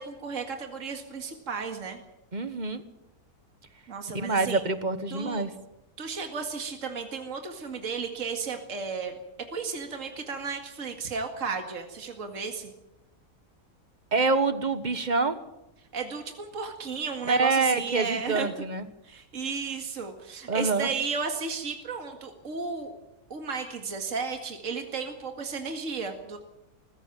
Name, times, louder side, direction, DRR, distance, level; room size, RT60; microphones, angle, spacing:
voice 1, 0.0-2.0 3.9-4.6 5.1-5.4 6.0-9.2 9.5-12.7 15.9-18.5 19.0-22.9 23.3-26.4, right 5 dB, 60° right, 5 dB, 2.4 m, -34 dB
voice 2, 2.3-2.8 4.1-5.5 14.1-15.4 17.2-18.8 20.5-20.9, right 3 dB, 30° right, 12 dB, 1.4 m, -26 dB
20.5 x 15.5 x 9.1 m, 0.91 s
omnidirectional pair, 1.6 m